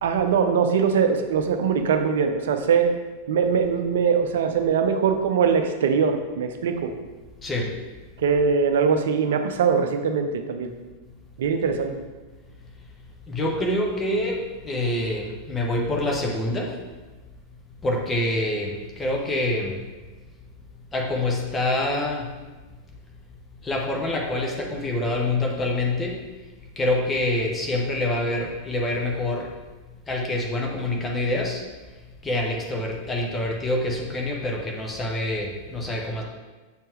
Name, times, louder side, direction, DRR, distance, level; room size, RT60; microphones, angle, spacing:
voice 1, 0.0-2.9 3.3-6.9 8.2-10.7 11.4-11.9, right 6 dB, 60° right, 7 dB, 0.6 m, -22 dB
voice 2, 7.4-7.7 13.3-16.8 17.8-19.8 20.9-22.4 23.6-26.2 26.8-29.5 30.1-31.6 32.2-36.2, left 1 dB, 15° left, -1 dB, 0.9 m, -26 dB
7.0 x 4.4 x 3.2 m, 1.3 s
figure-of-eight pair, 90°, 0 cm